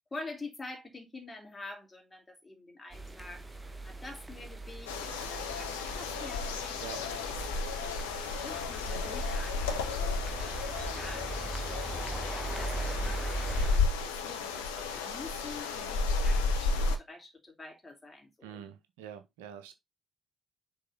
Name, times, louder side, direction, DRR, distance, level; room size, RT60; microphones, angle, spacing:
voice 1, 0.1-3.5 3.8-11.3 11.7-18.7, left 2 dB, 25° left, 2.9 m, -47 dB
sound 1, 2.9-13.8, right 2 dB, 15° right, 1.5 m, -40 dB
sound 2, 4.9-17.0, left 4 dB, 75° left, 0.8 m, -33 dB
voice 2, 18.4-19.7, right 9 dB, 75° right, 0.7 m, -45 dB
6.5 x 4.1 x 4.0 m
figure-of-eight pair, 40°, 0 cm